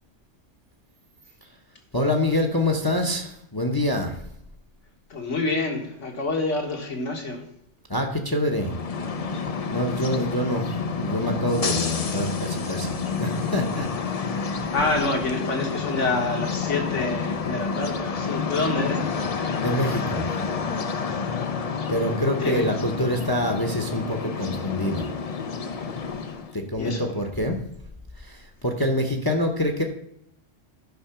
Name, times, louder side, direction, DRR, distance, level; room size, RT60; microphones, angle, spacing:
voice 1, 1.9-4.2 7.9-8.8 9.7-13.9 14.3-14.5 19.6-20.3 21.9-25.1 26.5-27.6 28.2-29.8, left 1 dB, 20° left, 4 dB, 0.8 m, -26 dB
voice 2, 5.1-7.4 14.7-19.3 22.4-22.7 26.8-27.1, left 3 dB, 70° left, 3 dB, 1.9 m, -27 dB
sound 1, 8.5-26.6, left 5 dB, 45° left, 0.5 m, -29 dB
10.5 x 5.6 x 5.6 m, 0.77 s
omnidirectional pair, 1.3 m